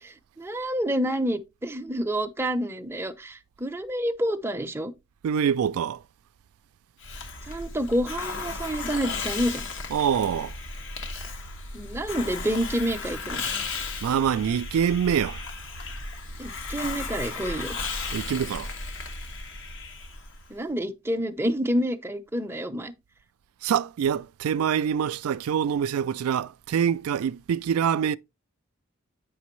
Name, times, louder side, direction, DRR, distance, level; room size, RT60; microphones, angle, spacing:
voice 1, 0.0-4.9 7.5-9.6 11.7-13.4 16.4-17.7 20.5-22.9, equal, 10° right, 0.6 m, -28 dB
voice 2, 5.2-6.0 9.9-10.5 14.0-15.4 18.1-18.7 23.6-28.2, right 8 dB, 85° right, 0.3 m, -25 dB
Hiss, 7.0-20.5, left 3 dB, 60° left, 1.2 m, -35 dB
8.4 x 5.9 x 3.1 m
head